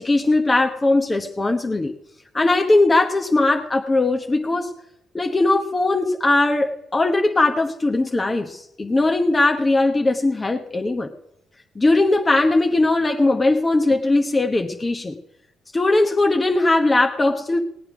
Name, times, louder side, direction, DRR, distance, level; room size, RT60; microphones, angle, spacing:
voice 1, 0.0-1.9 2.3-4.7 5.1-11.1 11.8-15.2 15.7-17.6, left 2 dB, 20° left, 4 dB, 1.0 m, -19 dB
18.5 x 8.8 x 6.1 m, 0.80 s
cardioid pair, 90°, 0 cm